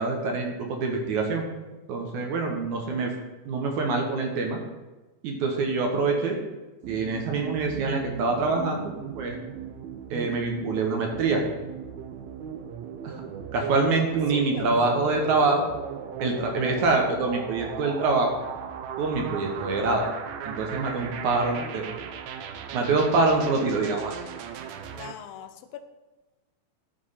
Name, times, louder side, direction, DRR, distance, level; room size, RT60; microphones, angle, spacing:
voice 1, 0.0-1.4 1.9-3.1 3.5-4.6 5.2-6.4 6.9-9.4 10.1-11.4 13.0-13.2 13.5-15.7 16.2-18.4 19.0-20.0 20.4-21.9 22.7-24.2, right 3 dB, 65° right, 2 dB, 2.2 m, -25 dB
sound 1, 6.8-25.1, right 8 dB, 90° right, 1.5 m, -38 dB
voice 2, 14.3-15.0 24.9-25.8, left 9 dB, 80° left, 8 dB, 2.4 m, -42 dB
11.5 x 4.6 x 5.6 m, 1.1 s
omnidirectional pair, 4.1 m